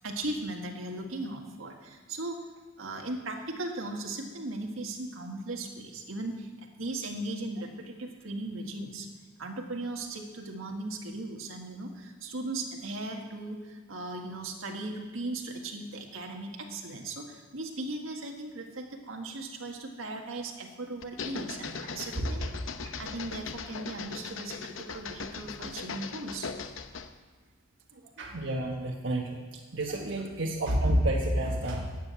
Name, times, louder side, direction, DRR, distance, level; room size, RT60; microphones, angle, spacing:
voice 1, 0.0-2.4 2.8-9.1 9.4-22.5 23.0-26.5, right 2 dB, 80° right, 2 dB, 1.7 m, -37 dB
sound 1, 21.0-27.2, left 5 dB, 70° left, 0.7 m, -39 dB
voice 2, 28.2-29.5 29.7-32.0, right 1 dB, 65° right, -1 dB, 1.4 m, -29 dB
12.0 x 7.6 x 8.9 m, 1.3 s
head